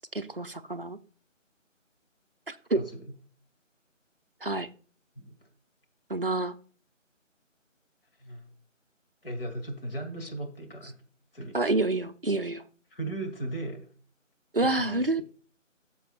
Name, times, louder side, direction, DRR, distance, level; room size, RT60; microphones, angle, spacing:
voice 1, 0.1-1.0 2.5-2.8 4.4-4.7 6.1-6.5 11.5-12.6 14.5-15.2, right 2 dB, 45° right, 9 dB, 0.5 m, -28 dB
voice 2, 2.7-3.1 5.2-5.4 8.2-8.5 9.2-11.0 11.3-11.6 12.9-13.9 14.6-15.2, right 1 dB, 45° left, 4 dB, 1.8 m, -37 dB
11.5 x 6.8 x 2.3 m, 0.40 s
figure-of-eight pair, 170°, 39 cm